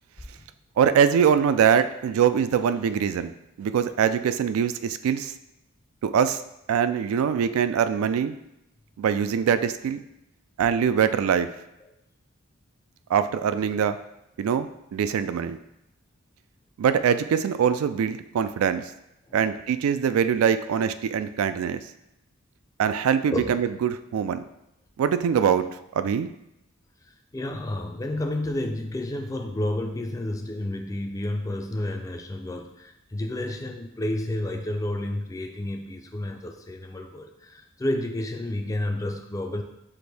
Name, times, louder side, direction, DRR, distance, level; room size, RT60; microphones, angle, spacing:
voice 1, 0.8-3.3 3.6-5.3 6.0-6.4 6.7-8.3 9.0-10.0 10.6-11.5 13.1-14.0 14.4-15.6 16.8-18.9 19.3-21.8 22.8-24.5 25.0-25.7 25.9-26.3, right 7 dB, 85° right, 14 dB, 0.3 m, -23 dB
voice 2, 27.3-39.6, left 1 dB, 15° left, 4 dB, 0.3 m, -30 dB
5.9 x 2.5 x 3.4 m, 0.86 s
head